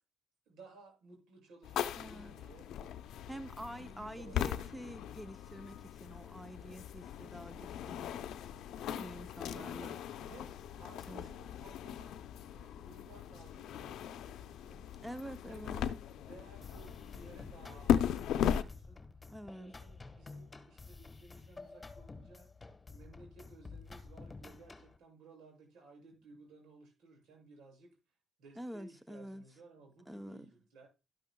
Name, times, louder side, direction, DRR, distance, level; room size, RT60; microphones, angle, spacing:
voice 1, 0.5-2.7 3.2-5.1 9.3-15.0 15.4-15.7 16.2-19.0 19.4-22.5 22.9-27.9 28.4-30.9, right 3 dB, 85° right, 7.2 m, -58 dB
sound 1, 1.6-18.6, left 9 dB, 80° left, 0.6 m, -38 dB
voice 2, 2.0-2.4 3.3-8.3 9.0-10.0 11.1-11.2 15.0-15.9 19.3-19.7 28.6-29.4 30.1-30.5, equal, 5° right, 0.7 m, -47 dB
sound 2, 16.6-25.0, left 3 dB, 25° left, 1.4 m, -51 dB
12.0 x 12.0 x 2.3 m
cardioid pair, 90°, 0 cm